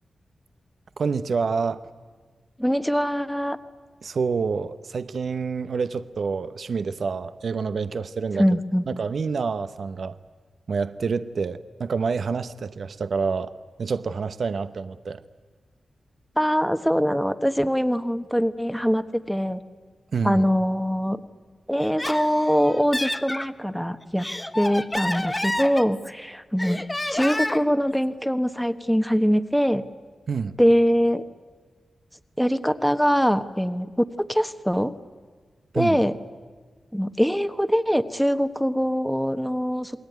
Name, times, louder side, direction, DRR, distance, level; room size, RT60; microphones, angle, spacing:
voice 1, 1.0-1.8 4.0-8.4 8.9-10.2 10.7-13.5 13.8-15.2 20.1-20.5 30.3-30.6 35.7-36.0, right 5 dB, 70° right, 11 dB, 0.8 m, -27 dB
voice 2, 2.6-3.6 8.4-8.8 16.4-19.6 20.2-21.2 21.7-24.3 24.5-26.8 27.1-29.8 30.6-31.2 32.4-34.9 35.7-36.2 36.9-40.0, equal, ahead, 9 dB, 1.2 m, -23 dB
Laughter, 21.8-23.5 24.0-26.2 26.6-27.7, left 1 dB, 20° left, 1.2 m, -29 dB
28.5 x 21.0 x 9.3 m, 1.5 s
cardioid pair, 50°, 0 cm